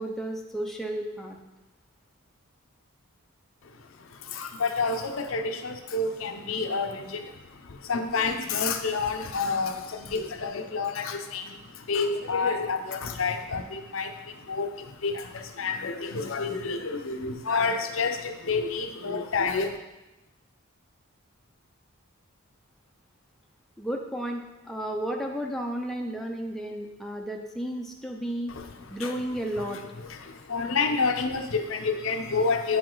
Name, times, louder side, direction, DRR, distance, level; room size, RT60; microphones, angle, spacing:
voice 1, 0.0-1.4 23.8-28.5 28.9-29.8, right 1 dB, ahead, 1 dB, 0.6 m, -33 dB
voice 2, 3.6-19.8 28.5-29.2 29.5-32.8, left 4 dB, 65° left, 6 dB, 0.7 m, -29 dB
9.1 x 4.9 x 3.9 m, 1.0 s
head